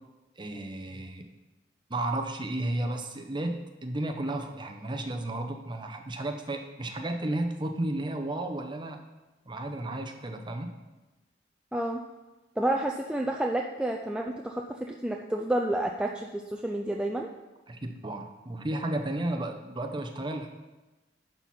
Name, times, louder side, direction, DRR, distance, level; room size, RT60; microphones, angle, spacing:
voice 1, 0.4-1.2 1.9-9.0 9.5-10.8 17.7-20.5, right 1 dB, 25° right, 5 dB, 0.8 m, -33 dB
voice 2, 11.7-12.0 12.6-17.3, right 1 dB, 5° right, 1 dB, 0.4 m, -30 dB
10.5 x 4.3 x 5.6 m, 1.1 s
head